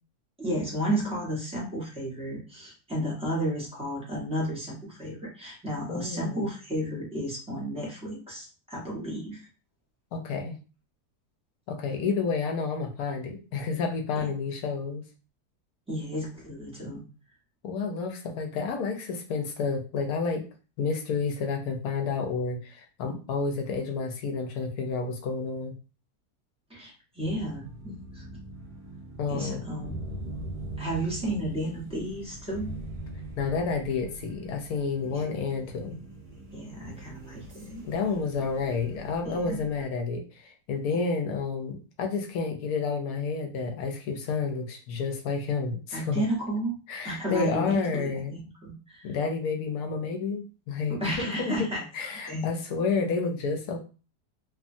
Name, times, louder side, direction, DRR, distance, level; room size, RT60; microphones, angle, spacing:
voice 1, 0.4-9.5 14.2-14.3 15.9-17.0 26.7-28.2 29.3-30.0 30.8-32.7 35.0-35.2 36.5-37.8 39.2-39.6 40.9-41.0 45.9-46.7 47.0-49.1 50.9-51.8 52.3-52.5, right 1 dB, 5° right, -4 dB, 0.7 m, -33 dB
voice 2, 5.9-6.5 10.1-10.6 11.7-15.0 17.6-20.5 20.8-25.7 29.2-29.6 33.4-36.0 37.8-46.2 46.9-48.4 49.0-51.7 51.9-53.8, left 4 dB, 75° left, 3 dB, 1.1 m, -30 dB
sound 1, 27.2-39.9, right 2 dB, 55° right, 1.3 m, -42 dB
2.9 x 2.2 x 2.6 m, 0.34 s
omnidirectional pair, 1.7 m